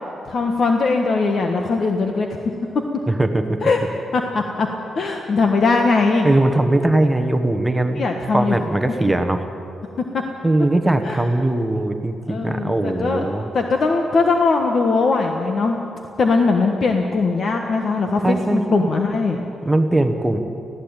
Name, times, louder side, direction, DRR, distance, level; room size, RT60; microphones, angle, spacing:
voice 1, 0.3-2.3 3.6-3.8 4.1-4.7 5.0-6.3 7.9-8.6 10.1-10.2 11.0-11.2 12.3-13.3 13.5-15.8 16.2-19.4, left 4 dB, 50° left, 3 dB, 1.4 m, -20 dB
voice 2, 3.1-3.6 6.2-8.0 8.3-9.5 10.4-13.5 18.2-18.9 19.6-20.4, right 1 dB, 10° right, 6 dB, 1.2 m, -20 dB
19.5 x 15.5 x 8.9 m, 2.7 s
wide cardioid pair, 135°, 0 cm